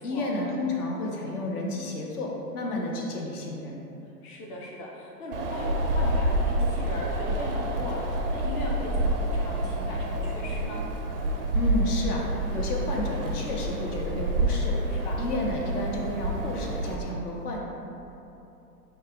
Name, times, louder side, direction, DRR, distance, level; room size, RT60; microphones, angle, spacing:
voice 1, 0.0-3.8 11.5-14.8 15.2-17.6, left 1 dB, 65° left, -1 dB, 0.9 m, -31 dB
voice 2, 4.2-10.8 14.9-15.2, left 1 dB, 30° left, -3 dB, 0.5 m, -38 dB
Wind, 5.3-16.9, right 1 dB, 40° right, 0.4 m, -28 dB
5.4 x 2.3 x 3.7 m, 2.9 s
figure-of-eight pair, 110°, 50 cm